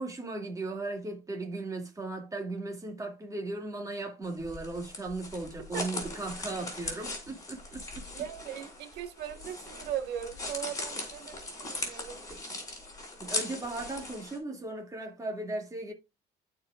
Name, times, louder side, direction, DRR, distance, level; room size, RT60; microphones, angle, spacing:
voice 1, 0.0-8.1 13.2-15.9, right 2 dB, 20° right, 2.3 m, -37 dB
sound 1, 4.2-14.4, left 2 dB, 20° left, 3.8 m, -39 dB
voice 2, 8.1-12.2, right 10 dB, 85° right, 1.3 m, -38 dB
14.5 x 4.9 x 2.4 m
cardioid pair, 110°, 17 cm